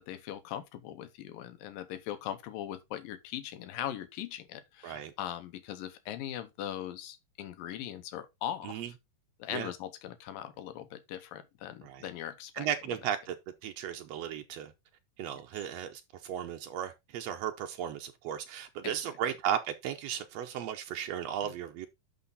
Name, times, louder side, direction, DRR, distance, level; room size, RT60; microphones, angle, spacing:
voice 1, 0.0-8.9 9.4-12.7 18.8-18.9 21.4-21.5, left 11 dB, 90° left, 2.8 m, -40 dB
voice 2, 12.5-13.3 13.6-14.7 15.2-21.9, right 10 dB, 85° right, 1.4 m, -35 dB
11.5 x 4.5 x 4.0 m
omnidirectional pair, 3.9 m